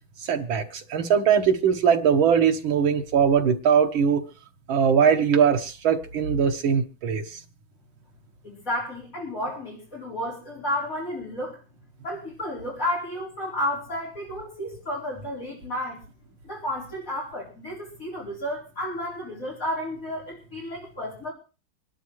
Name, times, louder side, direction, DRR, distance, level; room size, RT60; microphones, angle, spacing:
voice 1, 0.2-4.3 4.7-7.2, right 7 dB, 90° right, 2.1 m, -21 dB
voice 2, 8.4-11.6 12.0-16.0 16.4-21.3, left 1 dB, 40° left, 4.9 m, -32 dB
25.5 x 11.5 x 3.1 m
omnidirectional pair, 2.1 m